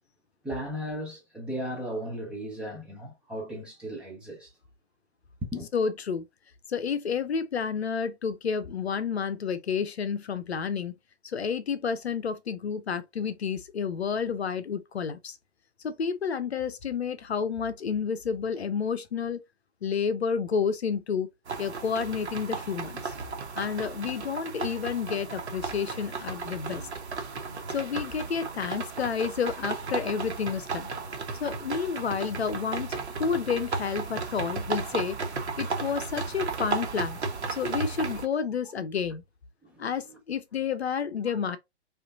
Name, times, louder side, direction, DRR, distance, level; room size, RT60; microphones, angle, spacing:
voice 1, 0.4-4.5 5.4-5.7 39.6-39.9 41.2-41.4, equal, 5° right, 0.6 m, -36 dB
voice 2, 5.7-6.2 6.7-10.9 11.2-15.4 15.8-19.4 19.8-21.3 21.6-23.1 23.6-26.8 27.7-30.9 31.4-35.2 35.6-37.2 37.5-39.2 39.8-41.6, left 6 dB, 65° left, 0.7 m, -30 dB
sound 1, 21.5-38.2, right 4 dB, 65° right, 1.1 m, -34 dB
4.9 x 2.6 x 2.6 m
figure-of-eight pair, 120°, 35 cm